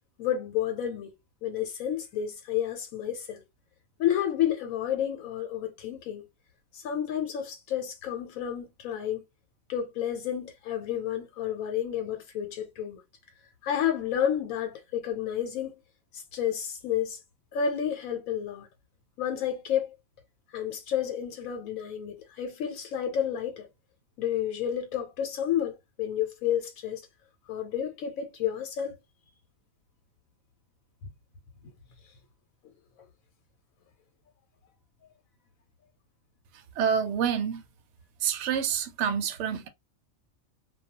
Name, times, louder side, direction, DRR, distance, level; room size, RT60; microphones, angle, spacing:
voice 1, 0.2-1.1 1.4-3.4 4.0-6.3 6.7-9.2 9.7-13.0 13.6-15.7 16.1-17.2 17.5-18.7 19.2-19.9 20.5-23.7 24.2-27.0 27.5-29.0, left 9 dB, 85° left, 1.1 m, -30 dB
voice 2, 36.8-37.6 38.2-39.7, right 7 dB, 65° right, 0.8 m, -27 dB
2.3 x 2.2 x 2.8 m
omnidirectional pair, 1.4 m